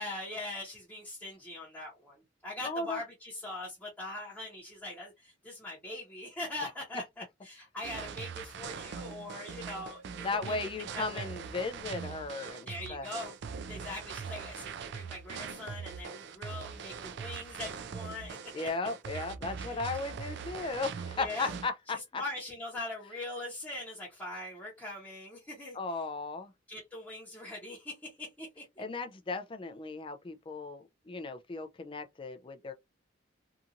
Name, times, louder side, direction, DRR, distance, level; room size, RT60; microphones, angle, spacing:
voice 1, 0.0-10.6 10.9-11.3 12.7-13.3 13.7-18.7 19.6-19.8 21.1-21.5 21.9-26.0 26.7-28.6, left 2 dB, 10° left, 1.0 m, -42 dB
voice 2, 2.6-3.0 10.2-13.1 18.5-22.2 25.8-26.5 28.8-32.7, left 3 dB, 25° left, 0.4 m, -36 dB
sound 1, 7.8-21.7, right 6 dB, 60° right, 0.4 m, -42 dB
2.8 x 2.5 x 2.5 m
head